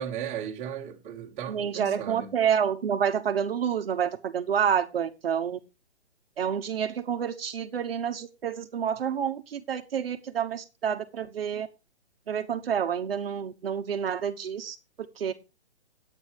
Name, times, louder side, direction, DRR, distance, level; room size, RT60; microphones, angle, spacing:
voice 1, 0.0-2.3, right 8 dB, 20° right, 1.6 m, -35 dB
voice 2, 1.5-5.6 6.4-11.7 12.3-14.7 15.2-15.3, right 8 dB, 60° right, 1.2 m, -28 dB
9.5 x 8.9 x 4.7 m
hypercardioid pair, 140°, 33 cm